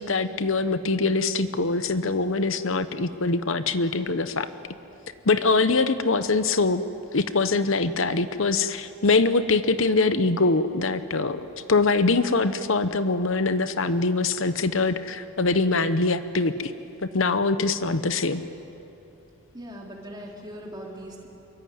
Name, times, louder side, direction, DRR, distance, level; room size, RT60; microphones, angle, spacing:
voice 1, 0.0-4.5 5.3-6.8 7.1-11.4 11.7-16.7 17.1-18.4, left 3 dB, 65° left, 11 dB, 0.9 m, -23 dB
voice 2, 19.5-21.3, equal, 20° right, -1 dB, 3.7 m, -40 dB
26.0 x 23.0 x 9.4 m, 3.0 s
head